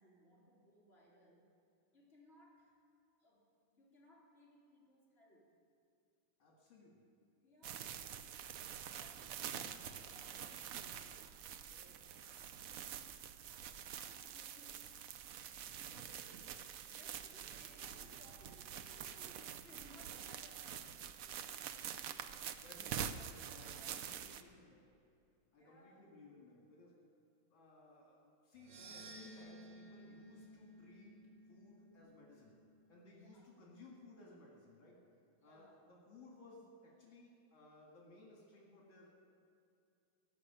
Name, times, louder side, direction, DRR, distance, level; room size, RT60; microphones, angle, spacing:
voice 1, 0.0-1.5 1.9-2.8 3.2-5.5 7.4-13.2 13.7-14.9 16.8-21.5 22.5-24.6 25.6-26.1 33.1-33.5 35.4-35.8, equal, 30° left, -6 dB, 3.5 m, -65 dB
voice 2, 6.4-7.1 15.5-17.0 22.5-24.9 25.5-27.0 27.5-31.2 31.5-32.5 32.9-35.0 35.4-39.1, left 2 dB, 70° left, -3 dB, 2.8 m, -60 dB
sound 1, 7.6-24.4, right 9 dB, 85° right, 0.7 m, -47 dB
sound 2, 28.5-32.9, right 2 dB, 60° right, 1.7 m, -56 dB
17.5 x 6.2 x 9.2 m, 2.6 s
omnidirectional pair, 2.2 m